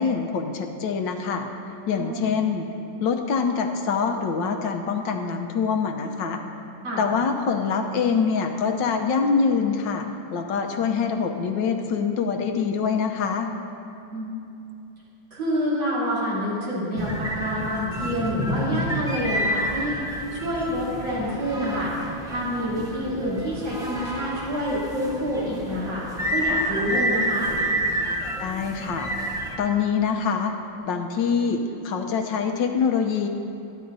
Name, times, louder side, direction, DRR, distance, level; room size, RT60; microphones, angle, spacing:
voice 1, 0.0-1.5 1.9-2.7 3.0-6.4 7.0-10.0 10.3-13.5 28.4-29.1 29.6-30.5 30.8-33.3, left 5 dB, 75° left, 5 dB, 1.5 m, -24 dB
voice 2, 15.3-21.9 22.2-26.0 26.3-27.5, equal, 80° right, -8 dB, 4.3 m, -27 dB
sound 1, 17.0-29.5, equal, 5° right, 0.5 m, -29 dB
24.0 x 9.7 x 2.7 m, 2.9 s
omnidirectional pair, 2.1 m